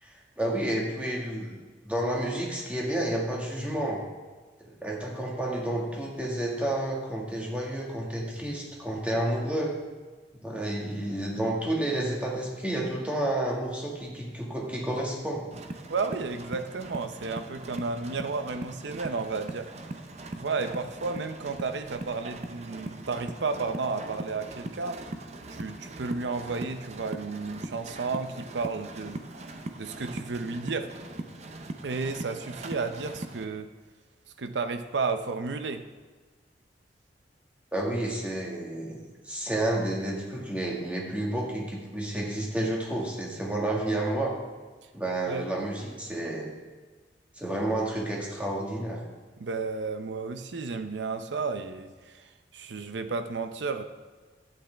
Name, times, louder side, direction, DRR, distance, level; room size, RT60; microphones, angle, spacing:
voice 1, 0.0-1.5 1.8-4.0 4.8-9.7 10.4-15.4 37.7-44.3 44.9-46.5 47.3-49.0, right 1 dB, 10° right, -3 dB, 1.7 m, -30 dB
sound 1, 15.5-33.4, right 2 dB, 40° right, 0.6 m, -40 dB
voice 2, 15.9-19.7 20.3-25.0 25.5-29.2 29.8-30.9 31.8-33.7 34.4-35.9 45.3-45.5 49.4-52.3 52.5-53.8, right 4 dB, 85° right, 8 dB, 0.6 m, -32 dB
11.5 x 8.6 x 3.4 m, 1.4 s
head